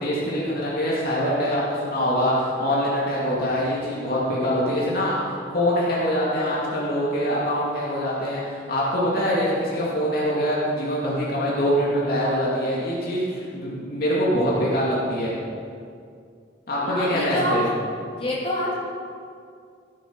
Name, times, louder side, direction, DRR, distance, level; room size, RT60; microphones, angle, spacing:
voice 1, 0.0-5.2 5.5-8.4 8.7-15.3 16.7-17.7, equal, 55° left, -6 dB, 2.6 m, -24 dB
voice 2, 16.8-17.5 18.1-18.7, equal, 30° left, -6 dB, 3.0 m, -27 dB
16.0 x 9.2 x 4.8 m, 2.3 s
head